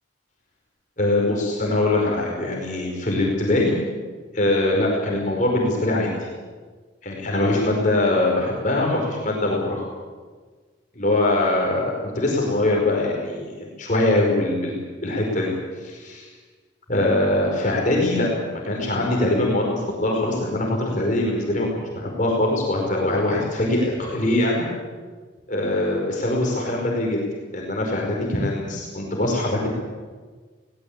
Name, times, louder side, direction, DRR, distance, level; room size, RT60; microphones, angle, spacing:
voice 1, 1.0-3.7 4.3-6.1 7.0-9.8 10.9-15.5 15.8-16.3 16.9-24.7 25.5-27.2 27.5-29.7, left 2 dB, 40° left, -1 dB, 4.8 m, -22 dB
21.0 x 18.5 x 8.6 m, 1.4 s
head